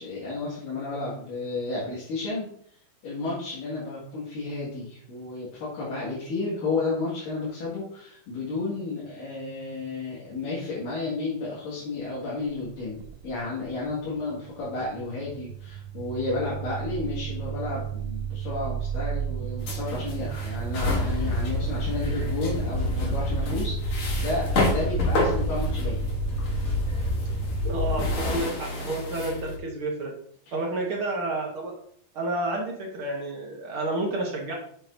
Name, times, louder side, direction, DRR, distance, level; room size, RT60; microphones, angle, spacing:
voice 1, 0.0-2.5 3.0-13.0 13.2-26.0 30.5-30.6, left 3 dB, 70° left, -7 dB, 3.7 m, -32 dB
sound 1, 12.5-14.0 14.3-28.2, right 7 dB, 80° right, 1.7 m, -33 dB
sound 2, 19.6-29.6, left 2 dB, 55° left, 1.5 m, -32 dB
sound 3, 20.7-28.3, left 3 dB, 40° left, 1.3 m, -30 dB
voice 2, 27.6-30.1 30.5-31.7 32.1-34.5, right 2 dB, 60° right, -2 dB, 1.4 m, -30 dB
8.0 x 7.1 x 2.7 m, 0.64 s
omnidirectional pair, 4.0 m